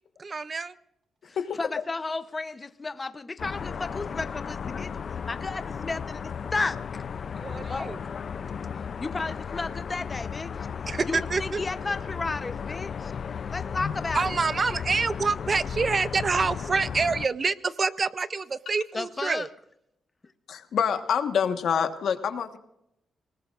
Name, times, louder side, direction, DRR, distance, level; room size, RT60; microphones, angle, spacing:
voice 1, 0.2-0.7 7.4-8.0 10.9-11.6 14.1-19.5, right 4 dB, 35° right, 15 dB, 0.5 m, -27 dB
voice 2, 1.2-4.9 5.3-7.0 7.7-7.9 9.0-10.7 11.1-13.1 13.5-14.2 18.9-19.5, left 3 dB, 25° left, 10 dB, 0.8 m, -33 dB
sound 1, 3.4-17.3, left 6 dB, 50° left, 0.5 m, -35 dB
voice 3, 20.5-22.6, left 7 dB, 70° left, 7 dB, 1.4 m, -26 dB
27.0 x 19.0 x 2.5 m, 0.81 s
cardioid pair, 130°, 0 cm